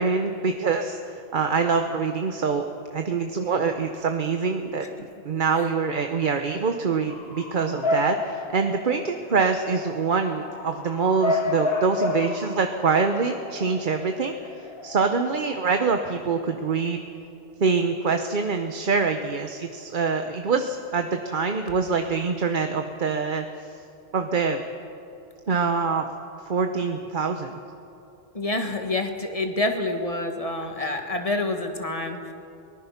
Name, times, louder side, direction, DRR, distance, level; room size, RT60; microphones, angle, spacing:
voice 1, 0.0-2.6 2.9-4.9 5.2-17.0 17.6-23.7 24.1-24.6 25.5-26.0 26.4-27.6, right 5 dB, 55° right, 6 dB, 1.0 m, -25 dB
Bark / Motor vehicle (road) / Siren, 7.1-15.9, left 2 dB, 70° left, 1.6 m, -31 dB
voice 2, 28.3-32.3, left 2 dB, 35° left, 4 dB, 1.7 m, -27 dB
23.0 x 19.5 x 5.8 m, 2.9 s
omnidirectional pair, 1.1 m